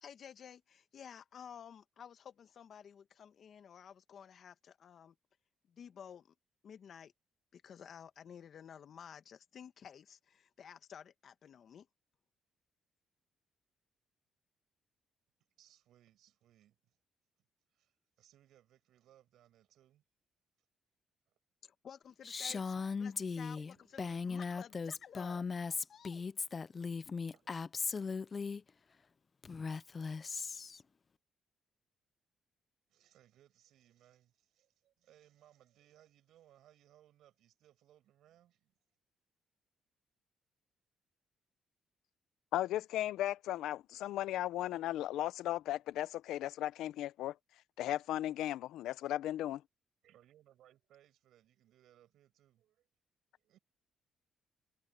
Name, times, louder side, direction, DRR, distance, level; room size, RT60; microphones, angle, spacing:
voice 1, 0.0-5.2 5.7-6.3 6.6-7.1 7.5-11.9 21.6-25.4 25.7-26.2, left 8 dB, 60° left, 1.4 m, -53 dB
voice 2, 15.6-17.0 17.7-20.0 21.3-21.4 23.2-24.3 24.7-25.2 26.8-27.1 27.3-27.5 32.9-38.7 50.0-52.9 53.4-53.6, right 12 dB, 80° right, 7.9 m, -67 dB
Female speech woman speaking, 22.2-28.6 29.4-30.8, left 5 dB, 35° left, 0.5 m, -38 dB
voice 3, 42.5-47.4 47.8-49.6, left 13 dB, 85° left, 0.5 m, -36 dB
cardioid pair, 90°, 0 cm